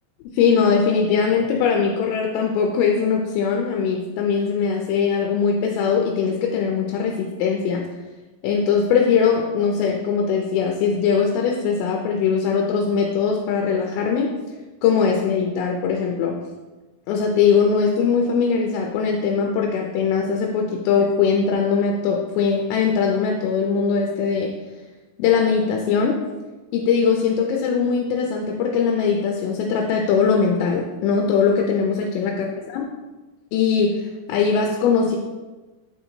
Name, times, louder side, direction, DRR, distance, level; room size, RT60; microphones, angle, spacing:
voice 1, 0.3-7.8 8.4-14.3 14.8-16.4 17.1-24.5 25.2-26.2 26.7-32.9 33.5-35.2, left 6 dB, 85° left, 1 dB, 2.7 m, -21 dB
8.3 x 4.3 x 2.8 m, 1.2 s
omnidirectional pair, 4.8 m